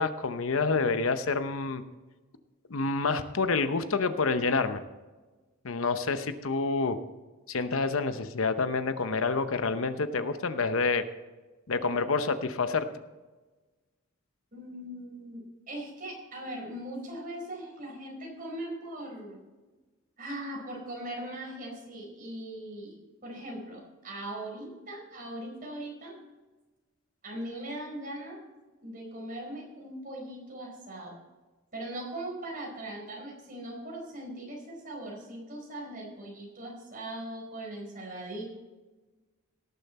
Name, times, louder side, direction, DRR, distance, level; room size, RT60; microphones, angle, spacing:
voice 1, 0.0-1.8 2.7-4.8 5.6-7.0 7.5-11.0 11.7-12.9, left 4 dB, 75° left, 10 dB, 0.8 m, -28 dB
voice 2, 14.5-19.4 20.2-23.0 23.2-26.2 27.2-28.4 28.8-31.1 31.7-38.4, right 1 dB, 40° right, -1 dB, 4.4 m, -40 dB
18.0 x 7.1 x 4.2 m, 1.2 s
head